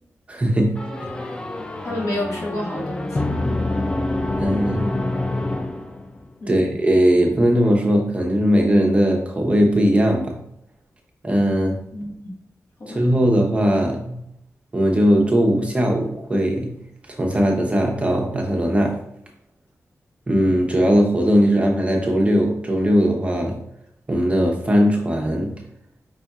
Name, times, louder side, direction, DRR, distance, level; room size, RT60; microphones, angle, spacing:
voice 1, 0.3-1.3 4.4-4.9 6.5-10.4 11.2-11.8 12.9-14.3 14.7-16.8 17.1-19.0 20.3-23.6 24.1-25.6, equal, 20° right, 0 dB, 0.7 m, -19 dB
sound 1, 0.8-6.3, left 2 dB, 15° left, 0.3 m, -26 dB
voice 2, 1.8-3.2 6.4-6.6 11.9-12.3 12.8-13.0, left 1 dB, 60° left, -4 dB, 1.6 m, -29 dB
5.3 x 4.1 x 2.3 m, 0.76 s
wide cardioid pair, 170°, 6 cm